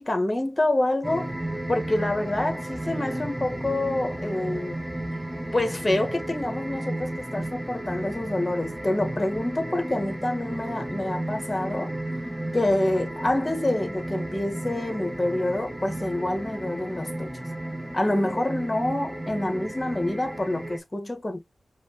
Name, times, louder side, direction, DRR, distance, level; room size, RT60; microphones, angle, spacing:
voice 1, 0.0-1.3 1.7-4.8 5.5-11.9 12.5-17.3 17.9-21.4, left 1 dB, 25° left, 1.6 m, -27 dB
sound 1, 1.0-20.8, right 1 dB, 15° right, 1.1 m, -33 dB
4.9 x 3.2 x 3.1 m
cardioid pair, 55°, 0 cm